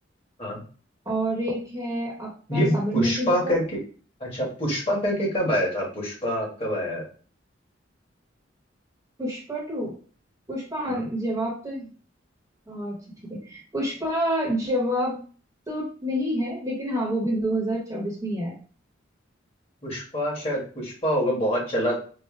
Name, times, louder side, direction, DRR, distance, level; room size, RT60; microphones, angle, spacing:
voice 1, 1.1-3.6 9.2-10.0 10.5-11.9 12.7-13.0 13.3-15.2 15.7-18.6, equal, 15° right, -3 dB, 1.0 m, -28 dB
voice 2, 2.5-3.6 4.2-7.0 10.9-11.0 19.8-22.0, equal, 30° left, -3 dB, 1.6 m, -26 dB
4.5 x 2.1 x 3.2 m, 0.40 s
head